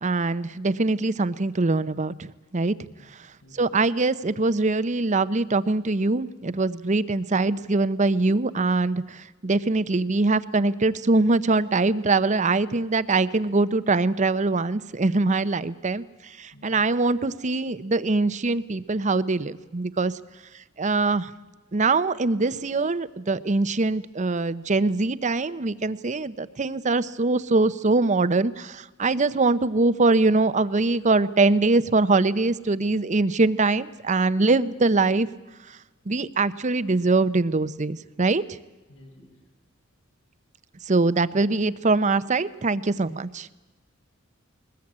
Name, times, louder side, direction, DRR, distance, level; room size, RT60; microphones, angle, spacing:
voice 1, 0.0-2.8 3.6-20.1 20.8-21.3 21.7-35.3 36.1-38.4 40.9-43.5, right 3 dB, 35° right, 15 dB, 0.7 m, -23 dB
voice 2, 3.4-3.8 16.5-16.8 38.9-39.4, left 1 dB, 85° left, 0 dB, 7.8 m, -52 dB
21.5 x 20.5 x 8.7 m, 1.2 s
head